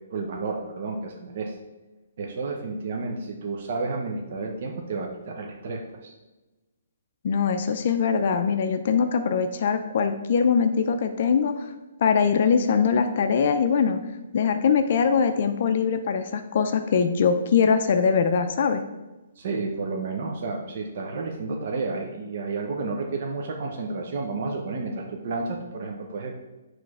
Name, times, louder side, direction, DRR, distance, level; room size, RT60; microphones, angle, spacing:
voice 1, 0.1-1.6 2.2-6.1 19.4-26.4, right 3 dB, 45° right, 1 dB, 0.7 m, -31 dB
voice 2, 7.2-11.7 12.0-14.0 14.3-18.8, left 6 dB, 45° left, 7 dB, 0.4 m, -22 dB
6.1 x 3.2 x 4.8 m, 1.1 s
hypercardioid pair, 170°, 0 cm